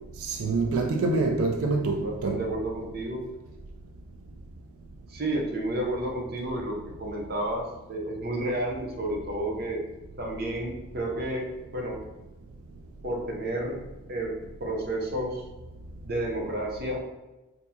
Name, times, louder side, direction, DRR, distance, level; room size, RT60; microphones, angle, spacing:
voice 1, 0.2-2.4, right 3 dB, 85° right, 0.4 m, -26 dB
voice 2, 1.9-3.2 5.1-9.8 10.2-12.0 13.0-13.8 14.1-14.3 14.6-15.4 16.0-17.0, right 1 dB, 45° right, 0.7 m, -31 dB
4.4 x 2.7 x 2.7 m
head